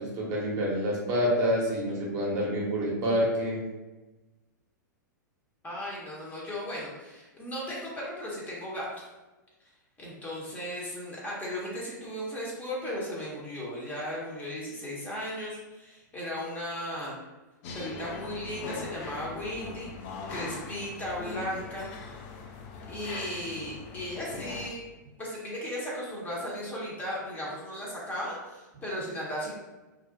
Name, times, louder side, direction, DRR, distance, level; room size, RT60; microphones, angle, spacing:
voice 1, 0.0-3.6, equal, 35° right, -3 dB, 0.7 m, -27 dB
voice 2, 5.6-9.1 10.0-17.2 17.7-21.9 22.9-24.8 25.2-29.6, equal, 15° left, -5 dB, 0.7 m, -36 dB
sound 1, 17.6-24.7, left 4 dB, 40° left, 0.4 m, -41 dB
2.4 x 2.0 x 2.6 m, 1.1 s
figure-of-eight pair, 100°, 10 cm